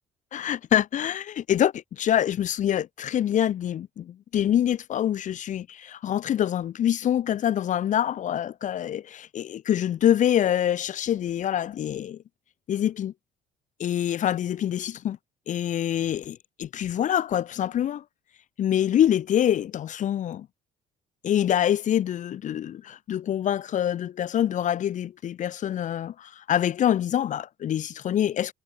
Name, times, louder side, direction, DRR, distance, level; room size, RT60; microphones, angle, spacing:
voice 1, 0.3-12.2 12.7-13.1 13.8-15.2 15.5-18.0 18.6-20.5 21.2-28.5, left 10 dB, 50° left, 0.6 m, -25 dB
cardioid pair, 110°, 17 cm